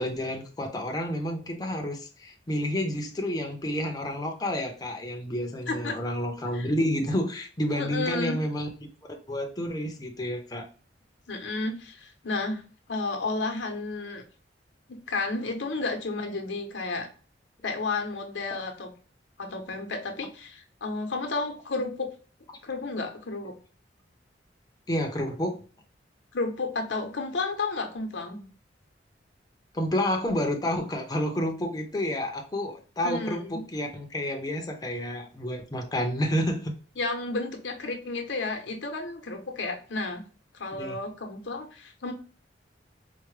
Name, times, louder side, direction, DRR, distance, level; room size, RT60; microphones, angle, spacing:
voice 1, 0.0-8.7 9.3-10.7 24.9-25.6 29.7-36.7 40.8-41.0, equal, 20° left, 2 dB, 0.5 m, -30 dB
voice 2, 5.7-6.0 6.5-6.7 7.7-8.4 11.3-12.6 12.9-14.2 14.9-17.1 17.6-18.9 19.4-22.1 22.6-23.5 26.3-28.5 33.0-33.6 37.0-40.2 40.5-42.1, left 3 dB, 80° left, 4 dB, 0.8 m, -32 dB
4.4 x 2.1 x 3.1 m, 0.38 s
head